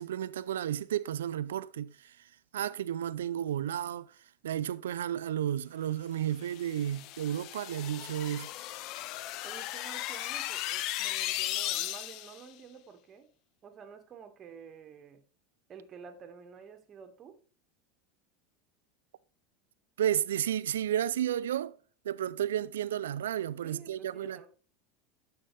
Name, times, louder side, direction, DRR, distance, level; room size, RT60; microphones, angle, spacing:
voice 1, 0.0-2.1 2.5-4.1 4.4-8.5 20.0-21.7 22.0-24.5, right 11 dB, 85° right, 0.4 m, -32 dB
sound 1, 6.4-12.4, left 15 dB, 55° left, 0.5 m, -36 dB
voice 2, 9.4-13.3 13.6-15.2 15.7-17.4 23.6-24.5, right 6 dB, 35° right, 1.6 m, -50 dB
11.5 x 5.8 x 3.3 m
hypercardioid pair, 100°, 0 cm